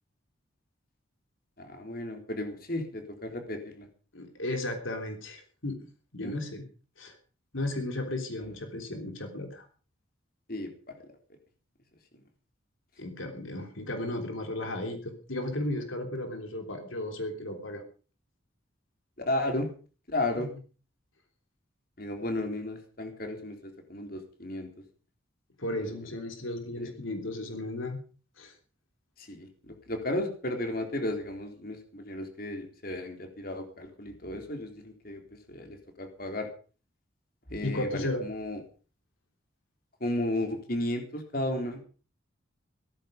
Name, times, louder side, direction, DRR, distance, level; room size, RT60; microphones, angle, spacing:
voice 1, 1.6-3.8 6.2-6.3 10.5-10.7 19.3-19.7 20.1-20.5 22.0-24.7 25.9-26.0 26.8-26.9 29.2-35.2 35.5-36.5 37.5-38.6 40.0-41.8, left 1 dB, 45° left, 4 dB, 3.8 m, -34 dB
voice 2, 4.1-5.8 6.1-6.6 7.0-7.2 7.5-9.7 13.0-17.8 20.4-20.5 25.6-28.0 28.4-28.5 37.6-38.2, left 1 dB, 80° left, 5 dB, 3.4 m, -34 dB
17.0 x 14.0 x 5.3 m, 0.39 s
head